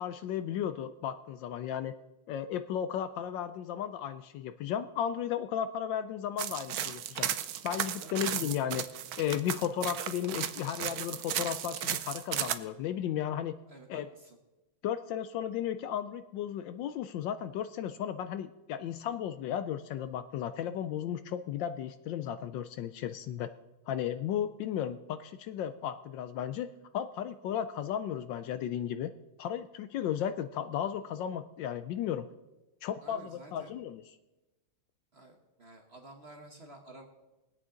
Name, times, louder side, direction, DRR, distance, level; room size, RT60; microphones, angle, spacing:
voice 1, 0.0-1.9 2.3-7.3 7.6-8.8 9.2-13.6 13.9-14.1 14.8-23.5 23.9-29.1 29.4-32.3 32.8-34.0, left 9 dB, 75° left, 11 dB, 1.2 m, -34 dB
sound 1, 6.4-12.5, right 10 dB, 70° right, 0.9 m, -35 dB
voice 2, 13.7-14.4 33.0-33.7 35.1-37.1, right 2 dB, 40° right, 3 dB, 1.1 m, -51 dB
22.5 x 8.3 x 3.8 m, 1.1 s
omnidirectional pair, 2.2 m